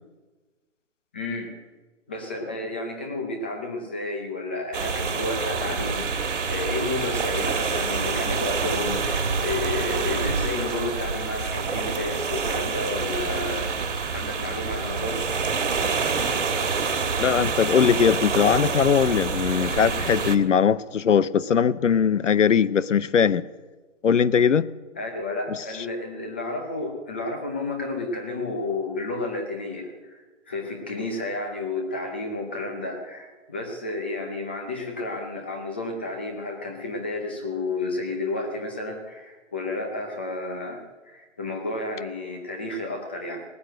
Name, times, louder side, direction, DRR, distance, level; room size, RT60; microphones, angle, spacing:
voice 1, 1.1-1.5 2.1-13.8 14.1-15.3 25.0-43.4, left 2 dB, 10° left, 3 dB, 0.7 m, -31 dB
sound 1, 4.7-20.4, right 5 dB, 70° right, 1.9 m, -27 dB
voice 2, 17.2-23.4 24.0-24.7, left 7 dB, 70° left, 17 dB, 0.7 m, -20 dB
19.0 x 9.7 x 7.7 m, 1.3 s
hypercardioid pair, 165°, 38 cm